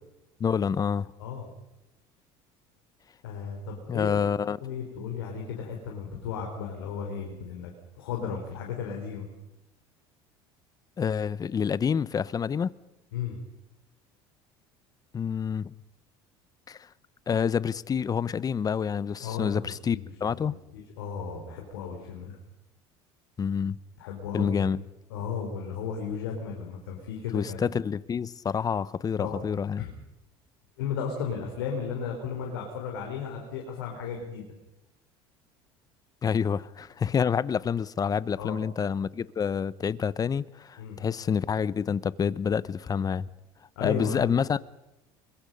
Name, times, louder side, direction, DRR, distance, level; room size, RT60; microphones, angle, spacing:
voice 1, 0.4-1.1 3.9-4.6 11.0-12.7 15.1-15.7 16.7-16.8 17.3-20.5 23.4-23.8 24.3-24.8 27.3-29.8 36.2-43.3 43.8-44.7, left 7 dB, 30° left, 0.8 m, -28 dB
voice 2, 3.2-9.3 13.1-13.4 19.2-20.1 20.7-22.4 24.0-24.7 25.1-27.7 29.2-29.4 29.8-29.9 30.8-34.4 38.4-38.6 40.8-41.0 43.8-44.3, left 6 dB, 85° left, 3.9 m, -35 dB
24.5 x 22.0 x 5.4 m
supercardioid pair, 85°, 12 cm